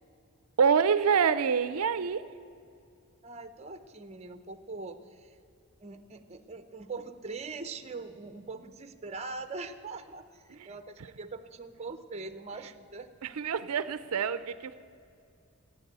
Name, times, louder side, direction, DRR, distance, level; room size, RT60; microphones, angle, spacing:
voice 1, 0.6-2.2 10.5-10.7 13.2-14.8, right 6 dB, 85° right, 14 dB, 0.5 m, -26 dB
voice 2, 3.2-5.4 5.8-13.1, right 3 dB, 30° right, 10 dB, 0.7 m, -42 dB
15.5 x 9.3 x 8.1 m, 2.5 s
head